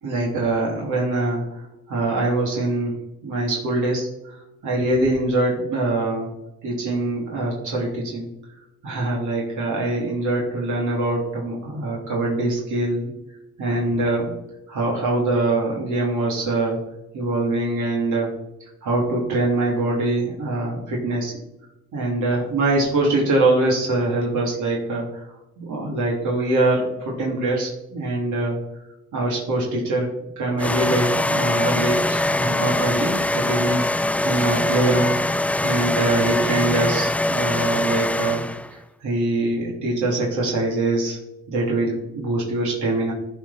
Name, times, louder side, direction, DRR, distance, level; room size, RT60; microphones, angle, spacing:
voice 1, 0.0-6.3 6.6-8.3 8.8-13.1 13.6-14.3 14.7-16.8 17.1-18.3 18.6-21.4 21.9-25.2 25.6-28.6 29.1-30.1 30.4-33.9 34.2-35.2 35.6-38.4 38.7-41.2 41.5-43.1, right 2 dB, 75° right, -3 dB, 3.1 m, -23 dB
sound 1, 30.6-38.7, left 1 dB, 5° left, 0.3 m, -23 dB
14.0 x 4.8 x 5.7 m, 0.92 s
cardioid pair, 90°, 30 cm